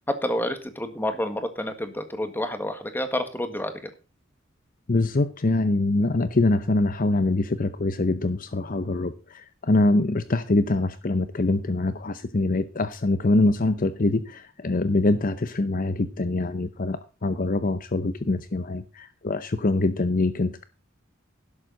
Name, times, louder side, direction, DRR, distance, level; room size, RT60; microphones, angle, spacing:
voice 1, 0.1-3.7, left 1 dB, 10° left, 9 dB, 1.6 m, -29 dB
voice 2, 4.9-20.6, left 2 dB, 45° left, 12 dB, 0.7 m, -24 dB
12.5 x 11.0 x 3.9 m, 0.30 s
head